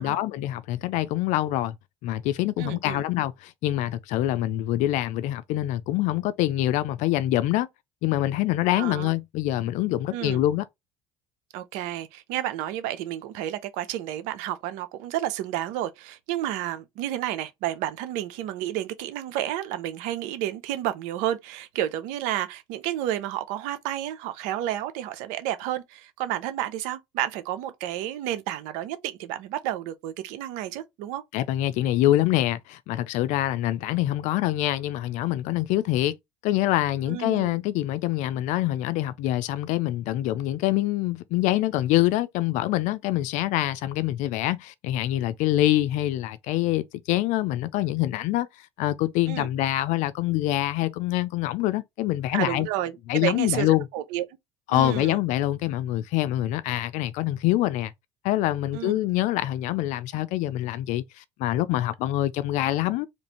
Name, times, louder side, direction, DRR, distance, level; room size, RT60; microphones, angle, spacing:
voice 1, 0.0-1.7 2.0-7.7 8.0-10.7 31.3-36.2 36.4-48.5 48.8-52.7 53.1-53.8 54.7-57.9 58.2-63.1, left 14 dB, 70° left, 0.4 m, -25 dB
voice 2, 2.6-3.0 8.8-9.1 10.1-10.4 11.5-31.2 37.1-37.6 49.3-49.5 52.3-54.2 54.7-55.2 58.7-59.0, right 12 dB, 80° right, 0.7 m, -31 dB
3.2 x 2.6 x 4.2 m
supercardioid pair, 95°, 13 cm